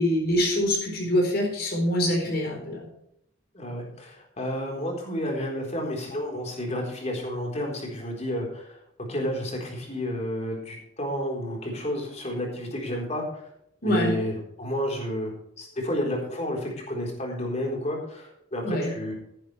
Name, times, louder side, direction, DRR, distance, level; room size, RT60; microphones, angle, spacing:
voice 1, 0.0-2.8 13.8-14.2 18.6-18.9, equal, 50° left, 0 dB, 4.1 m, -24 dB
voice 2, 3.5-8.8 9.1-13.5 13.8-15.3 15.6-19.1, equal, 35° left, 1 dB, 4.0 m, -31 dB
14.0 x 10.5 x 3.3 m, 0.77 s
head